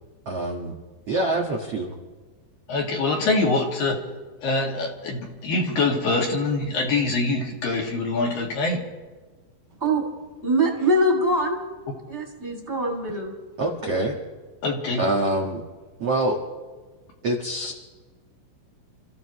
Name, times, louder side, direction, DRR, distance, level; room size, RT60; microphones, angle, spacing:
voice 1, 0.2-0.7 1.1-1.9 13.6-14.2 15.0-15.6 16.0-16.4 17.2-17.7, right 1 dB, 85° right, 0 dB, 1.3 m, -25 dB
voice 2, 2.7-4.0 4.4-8.8 14.6-15.0, left 3 dB, 55° left, 0 dB, 3.5 m, -24 dB
voice 3, 10.4-11.6 12.1-13.3, right 1 dB, 20° right, 0 dB, 2.1 m, -23 dB
29.5 x 15.0 x 3.2 m, 1.3 s
omnidirectional pair, 5.6 m